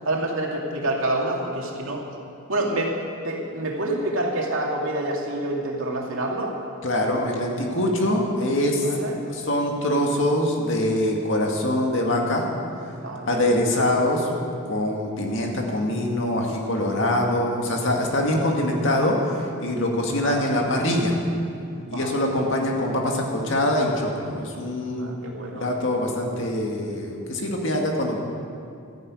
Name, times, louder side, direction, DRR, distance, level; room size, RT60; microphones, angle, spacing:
voice 1, 0.0-2.0 2.5-2.9 3.2-6.6 8.8-9.2 13.0-13.4 20.0-20.6 21.7-22.3 22.8-22.9 24.9-25.7, right 1 dB, 65° right, -1 dB, 2.4 m, -27 dB
voice 2, 6.8-8.9 9.3-12.5 13.3-14.3 14.6-21.2 21.9-25.1 25.5-28.2, left 1 dB, 55° left, 0 dB, 2.2 m, -24 dB
13.5 x 11.0 x 8.5 m, 2.5 s
head